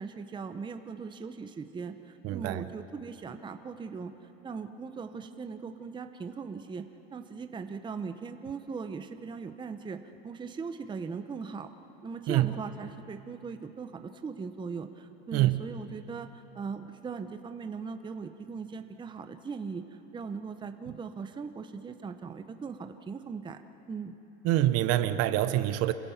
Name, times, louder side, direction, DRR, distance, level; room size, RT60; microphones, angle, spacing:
voice 1, 0.0-11.7 12.0-23.6 23.9-24.2, right 5 dB, 15° right, 8 dB, 0.8 m, -39 dB
voice 2, 2.2-2.7 12.3-12.5 15.3-15.6 24.4-25.9, right 14 dB, 50° right, 12 dB, 1.0 m, -25 dB
27.0 x 16.5 x 7.1 m, 3.0 s
supercardioid pair, 125°, 32 cm